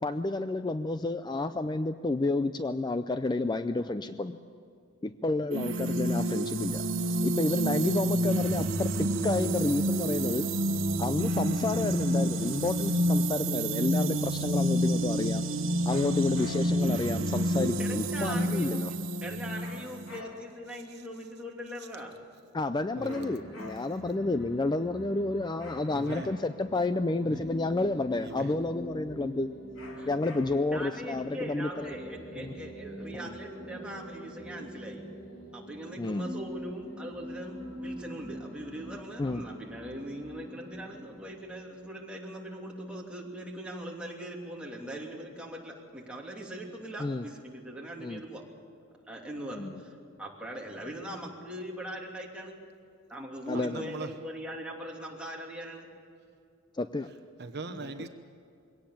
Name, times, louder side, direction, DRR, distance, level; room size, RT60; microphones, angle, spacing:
voice 1, 0.0-4.4 5.0-6.8 7.2-10.7 11.0-15.5 15.9-18.9 22.5-29.5 30.1-32.0 32.4-32.5 33.1-33.3 36.0-36.3 39.2-39.4 47.0-47.2 48.0-48.2 49.5-49.8 53.5-53.9 56.7-57.1 57.7-58.1, left 2 dB, 20° left, 11 dB, 0.4 m, -30 dB
sound 1, 5.5-20.2, right 1 dB, 80° right, 1.3 m, -29 dB
sound 2, 15.9-16.9 19.6-20.7 23.1-24.1 25.6-26.7 29.8-30.8, left 3 dB, 85° left, 2.5 m, -49 dB
voice 2, 17.8-18.8 19.2-22.2 30.0-30.1 30.7-35.0 35.5-48.4 49.1-52.6 53.1-55.9, equal, 5° right, -2 dB, 2.9 m, -41 dB
sound 3, 22.8-41.3, equal, 70° left, 6.6 m, -44 dB
voice 3, 23.0-23.3 25.9-26.3 27.2-27.4 28.2-28.5 53.5-54.1 57.4-58.1, right 3 dB, 55° right, 7 dB, 1.1 m, -40 dB
22.5 x 18.0 x 7.2 m, 2.4 s
head